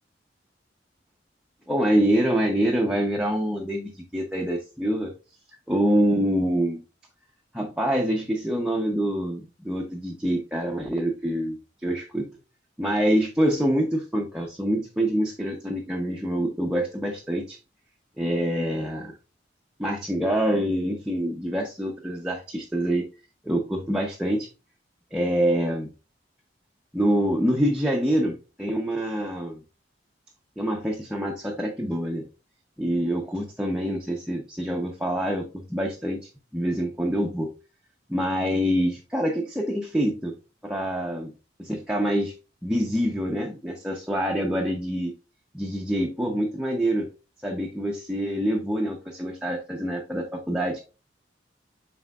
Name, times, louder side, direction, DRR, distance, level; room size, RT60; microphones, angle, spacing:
voice 1, 1.7-5.1 5.7-6.8 7.5-11.6 11.8-12.3 12.8-17.6 18.2-19.1 19.8-23.1 23.4-24.5 25.1-25.9 26.9-29.6 30.6-32.3 32.8-37.5 38.1-40.3 40.6-41.3 41.6-42.3 42.6-45.1 45.5-47.1 47.4-50.8, equal, 5° right, -1 dB, 0.8 m, -26 dB
7.8 x 4.9 x 2.4 m, 0.31 s
head